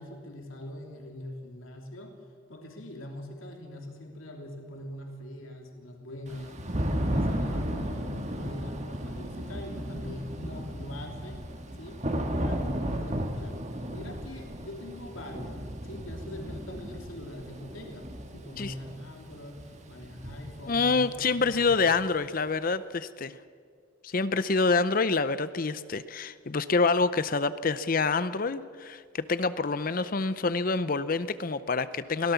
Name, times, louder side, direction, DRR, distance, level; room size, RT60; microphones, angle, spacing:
voice 1, 0.0-2.1 2.5-6.6 6.9-11.4 11.7-12.0 12.4-13.6 13.9-19.6 19.9-21.8, left 1 dB, 80° left, 2 dB, 3.2 m, -42 dB
Thunder / Rain, 6.3-22.0, equal, 35° right, 1.7 m, -34 dB
voice 2, 20.7-23.3 24.0-32.3, left 4 dB, 45° left, 14 dB, 0.6 m, -27 dB
23.5 x 17.5 x 7.0 m, 2.1 s
head